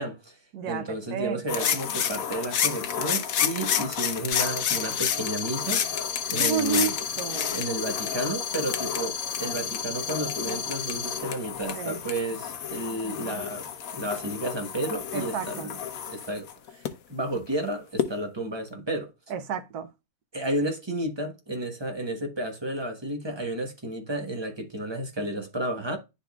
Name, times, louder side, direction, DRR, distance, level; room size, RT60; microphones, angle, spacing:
voice 1, 0.0-0.4 0.7-5.8 6.3-6.9 7.5-13.7 13.9-15.8 16.0-16.8 17.1-19.1 20.3-26.0, right 1 dB, 20° right, 1.1 m, -32 dB
voice 2, 0.5-0.8 1.1-1.7 6.4-7.6 11.7-12.0 15.1-15.7 19.3-19.9, right 6 dB, 90° right, 1.3 m, -30 dB
sound 1, 1.5-16.9 18.0-18.1, left 8 dB, 65° left, 1.1 m, -30 dB
sound 2, 4.3-11.2, left 7 dB, 45° left, 1.4 m, -34 dB
10.5 x 4.0 x 2.3 m
omnidirectional pair, 1.6 m